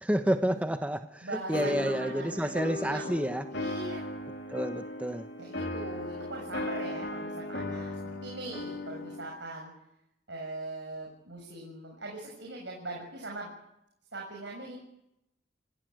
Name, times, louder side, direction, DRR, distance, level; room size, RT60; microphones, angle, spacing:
voice 1, 0.0-3.5 4.5-5.3, equal, 10° right, 7 dB, 1.1 m, -30 dB
voice 2, 1.2-3.1 3.5-4.0 5.4-9.7 10.3-13.5 14.1-14.8, right 2 dB, 80° right, 0 dB, 6.9 m, -41 dB
sound 1, 1.5-9.3, left 1 dB, 70° left, 4.1 m, -37 dB
26.5 x 18.5 x 9.5 m, 0.84 s
head